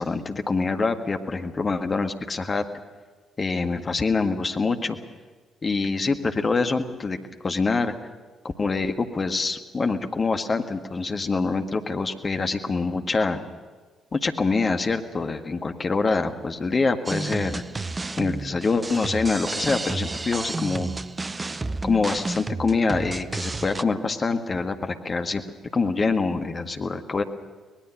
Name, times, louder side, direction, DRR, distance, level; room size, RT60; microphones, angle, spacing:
voice 1, 0.0-2.6 3.4-5.0 5.6-7.2 7.4-7.9 8.4-13.4 14.1-17.6 18.2-20.9 21.8-25.4 25.7-27.2, left 4 dB, 35° left, 6 dB, 1.7 m, -25 dB
sound 1, 17.1-23.8, right 3 dB, 25° right, 0.8 m, -31 dB
24.0 x 19.5 x 6.5 m, 1.4 s
figure-of-eight pair, 45°, 0 cm